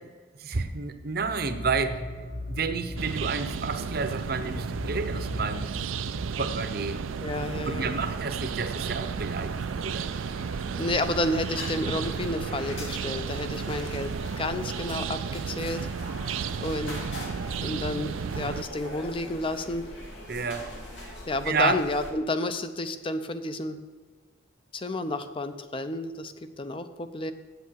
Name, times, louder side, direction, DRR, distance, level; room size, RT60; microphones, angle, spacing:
voice 1, 0.4-2.0 2.5-5.7 6.3-7.0 7.7-10.1 20.3-21.1 21.5-21.8, right 4 dB, 50° right, 9 dB, 0.8 m, -30 dB
sound 1, 1.1-8.4, left 1 dB, 45° left, 2.4 m, -39 dB
sound 2, 3.0-18.6, right 6 dB, 90° right, 0.4 m, -33 dB
voice 2, 7.2-8.0 10.8-15.8 16.6-17.0 17.6-19.9 21.3-23.8 24.7-27.3, left 2 dB, 25° left, 10 dB, 0.6 m, -31 dB
sound 3, 7.3-22.1, left 1 dB, 75° left, 2.4 m, -42 dB
8.2 x 8.1 x 6.3 m, 1.5 s
head